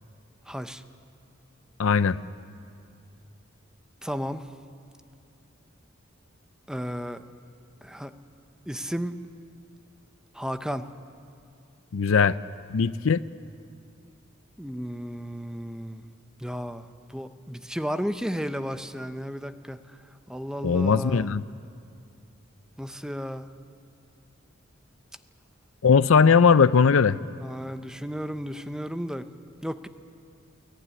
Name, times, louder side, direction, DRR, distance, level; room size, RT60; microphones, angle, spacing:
voice 1, 0.5-0.8 4.0-4.4 6.7-7.2 7.8-8.1 8.7-9.2 10.3-10.9 14.6-16.0 16.4-19.8 20.3-21.3 22.8-23.5 27.4-29.3 29.6-29.9, equal, 5° right, 10 dB, 0.7 m, -33 dB
voice 2, 1.8-2.2 11.9-12.4 12.7-13.2 20.6-21.4 25.8-27.2, left 5 dB, 75° left, 15 dB, 0.5 m, -19 dB
22.5 x 18.0 x 9.9 m, 2.5 s
head